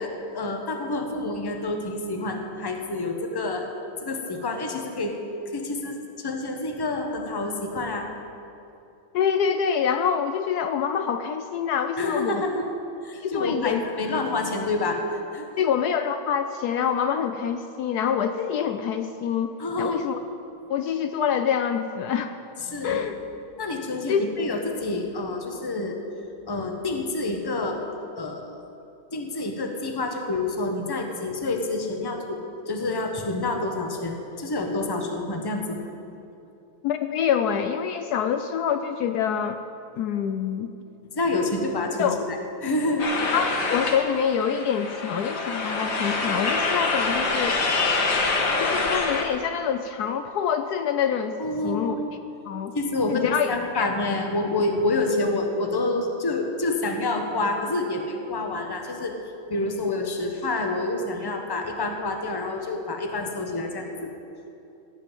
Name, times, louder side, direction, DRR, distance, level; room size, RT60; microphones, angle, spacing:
voice 1, 0.0-3.7 4.0-5.2 5.5-8.1 12.0-12.7 13.0-15.5 19.6-20.1 22.7-23.0 23.6-26.0 26.5-27.8 28.2-28.6 29.1-35.9 41.1-43.1 51.4-52.1 52.7-59.2 59.5-64.1, left 2 dB, 20° left, 3 dB, 0.7 m, -28 dB
voice 2, 9.1-12.4 13.2-13.8 15.6-20.2 20.7-22.4 22.8-23.1 24.1-24.3 36.8-39.6 40.0-40.7 42.0-42.2 43.3-47.6 48.6-51.4 51.6-51.9 52.5-52.7 53.1-53.9, left 8 dB, 85° left, 8 dB, 0.8 m, -26 dB
sound 1, 43.0-49.2, left 3 dB, 65° left, 2.1 m, -25 dB
16.5 x 5.6 x 9.1 m, 2.8 s
omnidirectional pair, 2.2 m